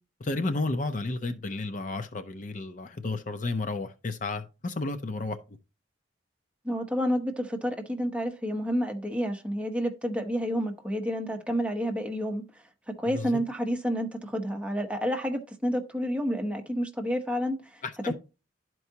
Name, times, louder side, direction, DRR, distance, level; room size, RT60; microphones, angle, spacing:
voice 1, 0.2-5.4 13.1-13.3 17.8-18.1, left 3 dB, 40° left, 0.5 m, -32 dB
voice 2, 6.6-12.4 13.0-17.8, equal, 5° right, 0.9 m, -29 dB
12.0 x 4.6 x 2.8 m
head